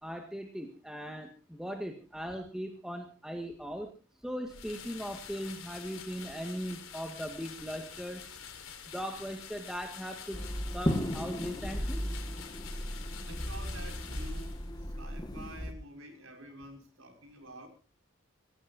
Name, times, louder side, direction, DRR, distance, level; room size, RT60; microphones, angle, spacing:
voice 1, 0.0-3.9 4.2-8.2 8.9-10.4 10.7-12.0, equal, 5° right, 3 dB, 1.9 m, -39 dB
sound 1, 4.4-14.9, left 7 dB, 90° left, 4.5 m, -47 dB
sound 2, 10.3-15.7, equal, 20° left, 1.8 m, -35 dB
voice 2, 13.3-17.7, right 1 dB, 80° right, 3 dB, 5.9 m, -49 dB
25.0 x 17.5 x 2.7 m, 0.36 s
head